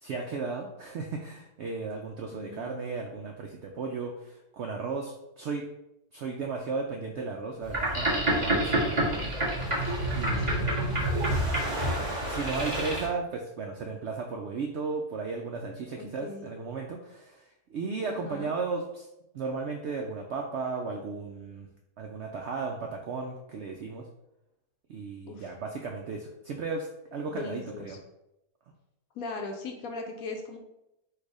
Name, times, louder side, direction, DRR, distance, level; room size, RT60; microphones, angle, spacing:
voice 1, 0.0-5.7 6.1-9.3 10.2-11.0 12.3-19.1 19.3-21.7 22.0-24.0 24.9-28.0, right 4 dB, 90° right, 1 dB, 0.6 m, -35 dB
voice 2, 2.3-2.7 10.4-10.7 16.0-16.5 18.1-18.5 25.3-25.5 27.3-28.0 29.2-30.6, left 3 dB, 70° left, 3 dB, 1.0 m, -39 dB
Boat Water vehicle, 7.6-13.1, right 1 dB, 20° right, 1.2 m, -28 dB
4.6 x 2.4 x 4.7 m, 0.88 s
omnidirectional pair, 1.7 m